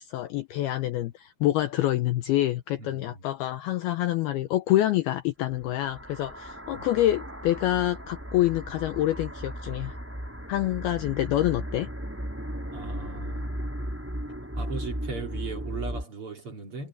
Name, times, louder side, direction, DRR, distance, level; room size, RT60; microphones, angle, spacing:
voice 1, 0.0-10.0 10.5-11.9, left 14 dB, 90° left, 2.2 m, -26 dB
voice 2, 2.8-3.2 6.7-6.9 12.7-13.5 14.5-16.9, right 4 dB, 35° right, 3.0 m, -38 dB
sound 1, 5.5-16.0, equal, 5° right, 3.1 m, -36 dB
omnidirectional pair, 5.5 m